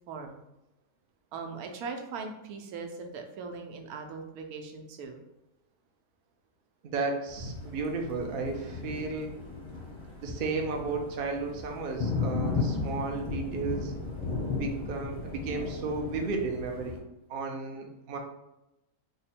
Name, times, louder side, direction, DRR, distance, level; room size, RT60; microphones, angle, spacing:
voice 1, 0.1-0.4 1.3-5.2, right 4 dB, 80° right, 4 dB, 1.1 m, -40 dB
voice 2, 6.8-9.3 10.2-13.9 14.5-17.0 17.3-18.2, right 4 dB, 60° right, 2 dB, 0.6 m, -33 dB
Thunder, 7.3-17.0, left 4 dB, 25° left, 0.6 m, -35 dB
3.7 x 2.1 x 4.2 m, 0.93 s
omnidirectional pair, 1.5 m